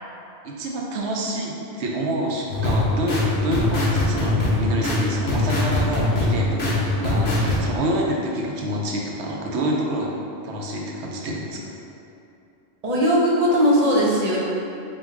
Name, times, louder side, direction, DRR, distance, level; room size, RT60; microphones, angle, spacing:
voice 1, 0.4-10.1 10.4-11.6, right 1 dB, 80° right, -2 dB, 0.9 m, -27 dB
sound 1, 2.5-7.6, left 2 dB, 70° left, 1.1 m, -22 dB
voice 2, 12.8-14.4, equal, 45° right, -5 dB, 0.6 m, -18 dB
4.5 x 2.2 x 3.6 m, 2.8 s
omnidirectional pair, 1.1 m